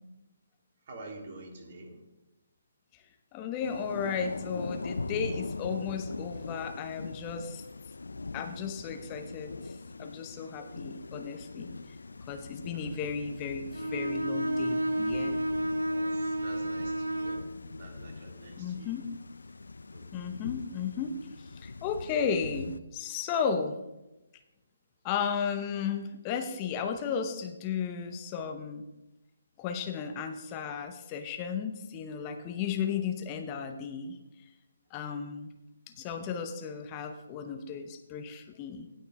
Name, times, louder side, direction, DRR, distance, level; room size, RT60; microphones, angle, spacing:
voice 1, 0.9-2.0 12.7-13.1 15.9-17.5 17.8-18.9 19.9-20.3, right 2 dB, 45° right, 0 dB, 3.0 m, -48 dB
voice 2, 3.3-7.6 8.3-11.7 12.3-15.4 18.6-19.1 20.1-23.8 25.0-28.9 29.6-34.2 34.9-35.5 36.0-38.9, left 6 dB, 25° left, 6 dB, 0.8 m, -34 dB
Thunder / Rain, 3.6-22.8, left 3 dB, 70° left, 0.4 m, -42 dB
Bowed string instrument, 13.7-17.5, right 1 dB, 85° right, 0.9 m, -31 dB
16.5 x 6.5 x 3.5 m, 0.99 s
figure-of-eight pair, 140°, 0 cm